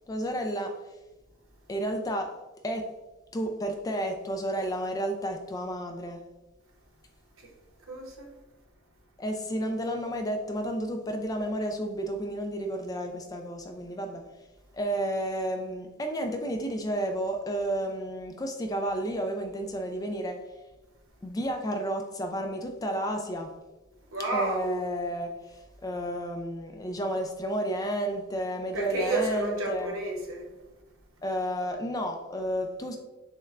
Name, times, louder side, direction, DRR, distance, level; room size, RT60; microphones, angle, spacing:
voice 1, 0.1-0.7 1.7-2.3 2.6-2.9 3.3-6.2 9.2-14.2 14.7-20.4 21.2-23.5 24.3-29.9 31.2-33.0, right 1 dB, 15° left, 0.3 m, -31 dB
voice 2, 7.9-8.3 24.1-24.8 28.7-30.5, right 2 dB, 65° right, 0.8 m, -31 dB
6.3 x 2.1 x 2.4 m
head